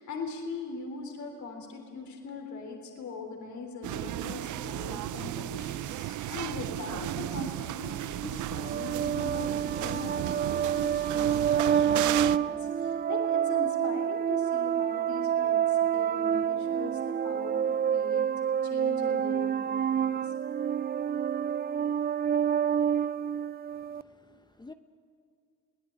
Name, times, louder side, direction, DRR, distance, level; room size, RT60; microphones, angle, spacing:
voice 1, 0.0-18.3 18.6-20.3, left 4 dB, 70° left, 3 dB, 3.6 m, -41 dB
sound 1, 3.8-12.4, right 14 dB, 75° right, 0.6 m, -34 dB
Whispering, 5.8-7.0 7.3-7.4 7.7-9.2 9.8-12.9, left 2 dB, 55° left, 5.4 m, -56 dB
sound 2, 8.6-24.0, right 9 dB, 30° right, 0.5 m, -28 dB
voice 2, 23.7-24.7, left 3 dB, 15° left, 8 dB, 0.8 m, -52 dB
23.5 x 17.5 x 9.3 m, 2.3 s
cardioid pair, 90°, 30 cm